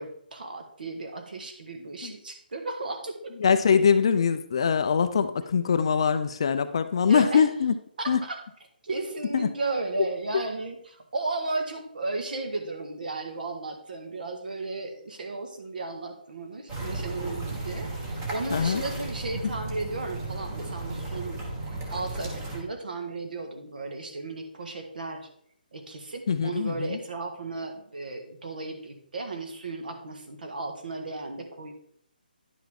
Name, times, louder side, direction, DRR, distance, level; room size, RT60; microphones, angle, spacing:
voice 1, 0.0-3.3 7.1-7.4 8.0-8.4 8.8-21.4 21.9-25.3 25.7-31.7, right 3 dB, 60° right, 5 dB, 1.5 m, -35 dB
voice 2, 3.4-7.7 8.1-8.2 9.3-9.5 18.5-18.8 26.3-27.0, left 6 dB, 35° left, 11 dB, 0.4 m, -23 dB
sound 1, 16.7-22.6, right 2 dB, 15° right, 1.2 m, -34 dB
10.0 x 5.7 x 3.6 m, 0.68 s
hypercardioid pair, 175°, 5 cm